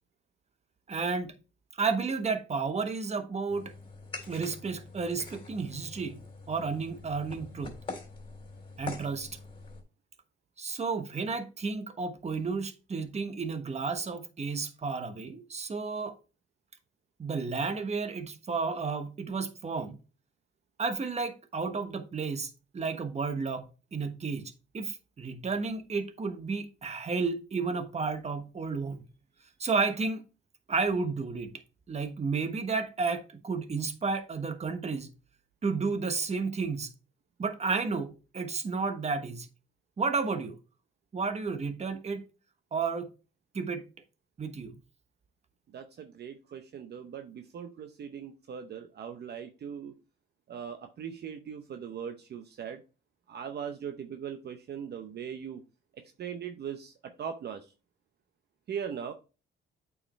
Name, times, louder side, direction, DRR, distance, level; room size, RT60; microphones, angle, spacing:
voice 1, 0.9-1.3 1.8-3.7 4.3-6.2 6.5-7.7 8.8-9.4 10.6-16.2 17.2-20.0 20.8-29.0 29.6-30.2 30.7-31.5 31.9-35.1 35.6-36.9 37.4-39.5 40.0-40.6 41.1-42.2 42.7-43.1 43.5-43.8 44.4-44.8, right 4 dB, 35° right, 1.2 m, -32 dB
sound 1, 3.5-9.8, left 3 dB, 25° left, 3.3 m, -44 dB
voice 2, 45.7-50.0 50.5-52.8 53.3-55.6 55.9-57.7 58.7-59.1, right 8 dB, 55° right, 0.8 m, -40 dB
8.5 x 4.8 x 3.1 m
cardioid pair, 90°, 20 cm